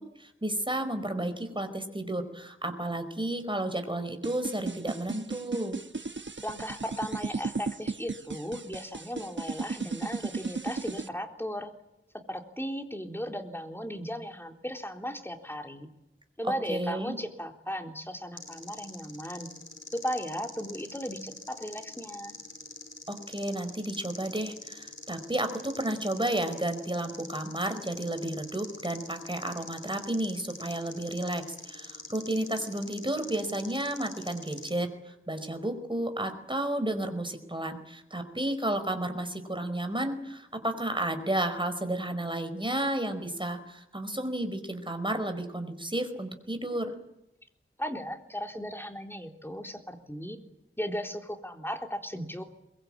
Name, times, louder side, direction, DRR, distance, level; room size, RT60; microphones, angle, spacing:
voice 1, 0.2-5.8 16.7-17.2 23.1-46.9, right 1 dB, 25° right, 8 dB, 4.8 m, -32 dB
sound 1, 4.2-11.1, right 4 dB, 65° right, 1.2 m, -35 dB
voice 2, 6.4-11.7 12.3-15.9 16.4-19.5 19.9-22.4 47.8-50.4 50.8-52.4, equal, 10° left, 4 dB, 4.0 m, -36 dB
sound 2, 18.4-34.7, left 2 dB, 70° left, 5.4 m, -45 dB
23.0 x 22.0 x 9.0 m, 0.87 s
wide cardioid pair, 55°, 21 cm